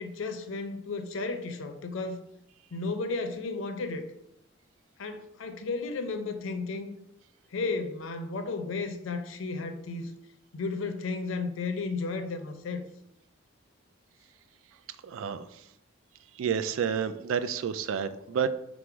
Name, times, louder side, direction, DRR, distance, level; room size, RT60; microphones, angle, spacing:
voice 1, 0.0-2.2 2.7-4.1 5.0-6.9 7.5-10.1 10.5-12.9, left 3 dB, 65° left, 0.5 m, -33 dB
voice 2, 15.0-15.6 16.4-18.5, right 7 dB, 70° right, 0.3 m, -30 dB
4.8 x 2.0 x 4.4 m
head